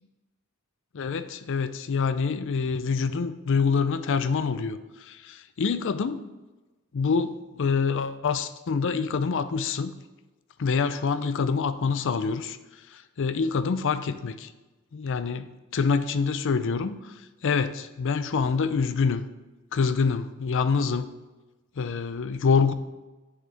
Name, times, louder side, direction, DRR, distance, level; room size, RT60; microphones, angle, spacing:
voice 1, 0.9-6.2 6.9-9.9 10.6-12.6 12.9-14.5 14.9-19.2 19.7-21.1 21.8-22.7, left 5 dB, 60° left, 12 dB, 0.5 m, -26 dB
8.1 x 6.2 x 3.4 m, 1.1 s
head